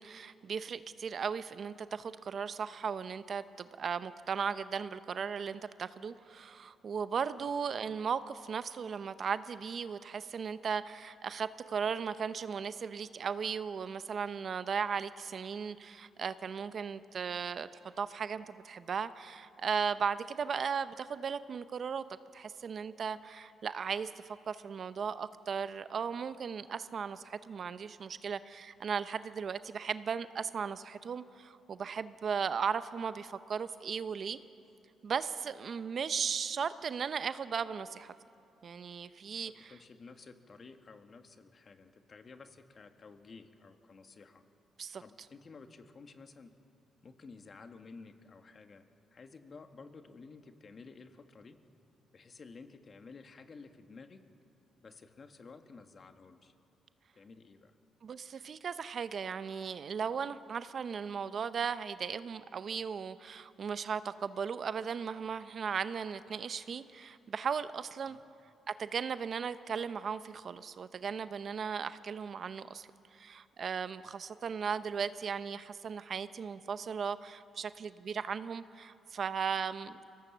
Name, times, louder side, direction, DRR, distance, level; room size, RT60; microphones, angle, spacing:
voice 1, 0.0-17.7 18.0-22.0 22.3-24.1 24.5-34.4 35.0-38.1 38.6-39.7 44.8-45.0 58.0-68.2 68.8-80.0, right 6 dB, 50° right, 13 dB, 0.7 m, -36 dB
voice 2, 39.5-44.4 45.0-46.5 47.0-48.8 49.1-51.6 52.1-54.3 54.8-56.5 57.1-57.7 68.1-68.2, left 4 dB, 40° left, 7 dB, 1.6 m, -53 dB
24.5 x 17.5 x 7.3 m, 2.8 s
cardioid pair, 90°, 0 cm